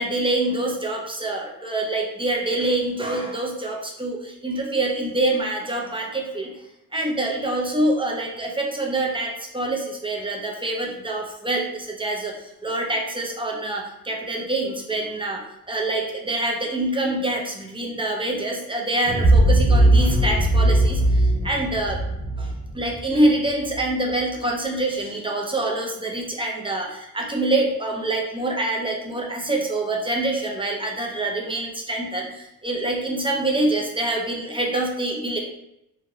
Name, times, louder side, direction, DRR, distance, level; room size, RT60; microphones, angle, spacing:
voice 1, 0.0-6.5 6.9-15.4 15.7-22.0 22.4-35.4, right 2 dB, 15° right, 0 dB, 0.4 m, -25 dB
sound 1, 19.1-23.8, right 1 dB, 80° right, 1.1 m, -19 dB
2.8 x 2.6 x 2.9 m, 0.84 s
wide cardioid pair, 165°, 36 cm